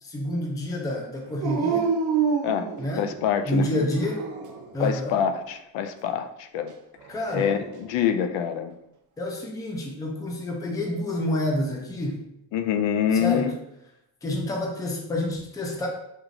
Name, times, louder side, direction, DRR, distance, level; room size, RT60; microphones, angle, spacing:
voice 1, 0.0-1.9 2.8-3.1 3.5-4.2 4.7-5.2 7.1-7.5 9.2-12.2 13.2-13.5 14.2-15.9, left 1 dB, 10° left, 1 dB, 0.4 m, -28 dB
Dog, 1.4-3.3 3.9-4.7 7.0-7.9, right 6 dB, 45° right, 0.5 m, -28 dB
voice 2, 3.0-3.7 4.8-6.7 7.3-8.7 12.5-13.5, left 8 dB, 80° left, 9 dB, 0.5 m, -25 dB
6.4 x 2.9 x 2.5 m, 0.83 s
cardioid pair, 175°, 45 cm